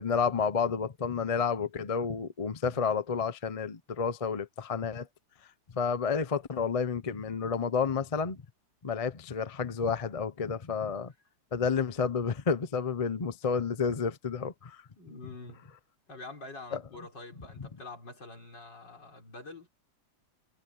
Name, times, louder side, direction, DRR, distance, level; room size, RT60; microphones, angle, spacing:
voice 1, 0.0-5.1 5.7-8.4 8.8-11.1 11.5-14.8 16.7-16.8, left 5 dB, 40° left, 0.5 m, -30 dB
voice 2, 15.0-15.7 16.1-19.7, left 3 dB, 65° left, 5.9 m, -46 dB
omnidirectional pair, 2.1 m